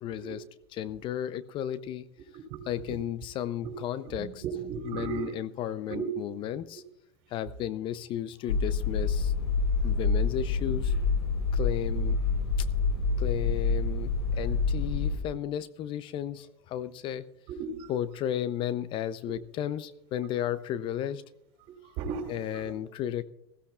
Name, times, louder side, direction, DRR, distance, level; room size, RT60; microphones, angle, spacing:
voice 1, 0.0-0.4 0.7-2.1 2.7-4.4 4.8-6.8 7.3-9.3 9.8-10.9 11.5-12.2 13.2-17.2 17.9-21.2 22.3-23.2, left 11 dB, 40° left, 15 dB, 0.6 m, -34 dB
voice 2, 4.2-5.3 5.9-6.1 17.5-17.9 22.0-22.6, right 7 dB, 50° right, 5 dB, 3.3 m, -35 dB
sound 1, 8.5-15.2, left 4 dB, 80° left, 6.9 m, -27 dB
20.5 x 15.5 x 2.4 m, 0.76 s
hypercardioid pair, 95°, 14 cm